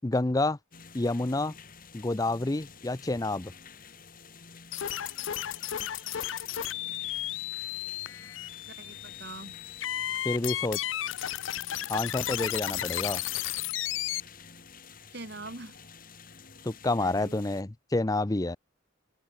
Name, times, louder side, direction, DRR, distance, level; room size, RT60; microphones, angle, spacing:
voice 1, 0.0-0.6 0.9-1.5 1.9-3.5 10.2-10.8 11.9-13.2 16.6-18.6, left 2 dB, 20° left, 0.5 m, -28 dB
sound 1, 0.7-17.6, left 5 dB, 45° left, 3.4 m, -51 dB
sound 2, 4.7-14.2, left 12 dB, 75° left, 0.5 m, -34 dB
voice 2, 8.8-9.6 15.1-15.8 17.0-17.4, right 2 dB, 55° right, 3.5 m, -43 dB
open air
head